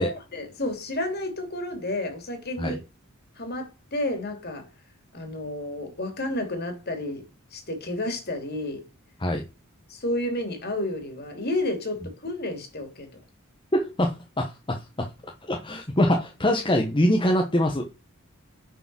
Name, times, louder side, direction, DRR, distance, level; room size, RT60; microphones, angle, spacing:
voice 1, 0.0-2.8 3.4-4.7 5.1-7.2 7.5-8.8 9.9-13.2, left 1 dB, 45° left, 2.8 m, -31 dB
voice 2, 13.7-15.1 15.5-17.9, left 1 dB, 20° left, 1.1 m, -24 dB
9.5 x 4.9 x 6.1 m
head